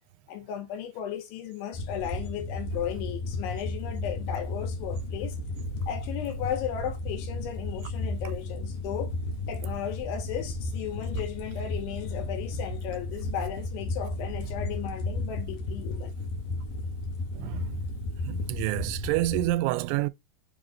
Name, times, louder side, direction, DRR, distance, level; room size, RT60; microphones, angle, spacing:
voice 1, 0.3-5.4 5.9-9.1 9.5-16.1, left 10 dB, 90° left, 3.5 m, -35 dB
sound 1, 1.7-19.5, left 2 dB, 70° left, 2.0 m, -34 dB
voice 2, 17.4-17.8 18.3-20.1, right 17 dB, 90° right, 2.9 m, -28 dB
7.0 x 3.8 x 3.8 m
omnidirectional pair, 5.3 m